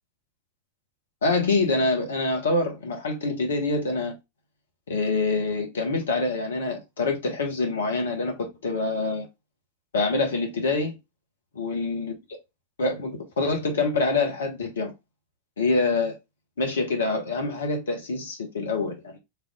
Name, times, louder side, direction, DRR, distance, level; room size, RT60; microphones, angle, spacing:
voice 1, 1.2-4.1 4.9-9.3 9.9-11.0 11.6-12.4 12.8-14.9 15.6-16.2 16.6-19.2, left 3 dB, 65° left, 1.4 m, -26 dB
4.6 x 3.5 x 2.4 m
figure-of-eight pair, 90°, 0 cm